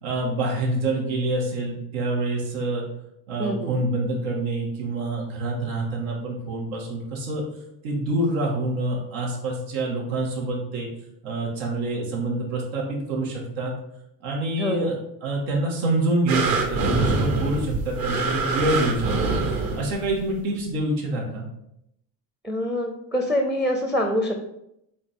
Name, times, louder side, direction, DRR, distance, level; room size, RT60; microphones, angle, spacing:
voice 1, 0.0-2.8 3.3-7.4 7.8-10.9 11.2-13.7 14.2-15.0 15.2-21.5, right 2 dB, 90° right, -3 dB, 2.0 m, -26 dB
voice 2, 3.4-3.7 14.6-14.9 22.4-24.3, equal, ahead, 3 dB, 0.5 m, -25 dB
sound 1, 16.3-20.2 20.8-20.9, right 3 dB, 50° right, 1.2 m, -24 dB
8.4 x 3.5 x 3.7 m, 0.80 s
cardioid pair, 145°, 45 cm